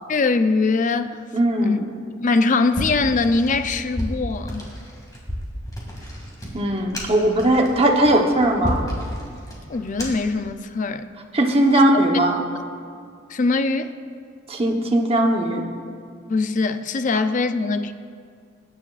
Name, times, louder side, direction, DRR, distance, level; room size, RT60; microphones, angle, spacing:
voice 1, 0.1-1.2 1.6-1.8 2.2-4.7 9.7-11.1 11.7-11.9 13.3-13.9 16.3-17.9, left 3 dB, 40° left, 10 dB, 0.5 m, -22 dB
voice 2, 1.3-1.8 6.5-8.8 11.3-12.4 14.5-15.7, right 1 dB, 30° right, 2 dB, 1.0 m, -19 dB
sound 1, 2.7-10.4, equal, 20° left, 2.2 m, -32 dB
21.0 x 9.8 x 2.5 m, 2.2 s
head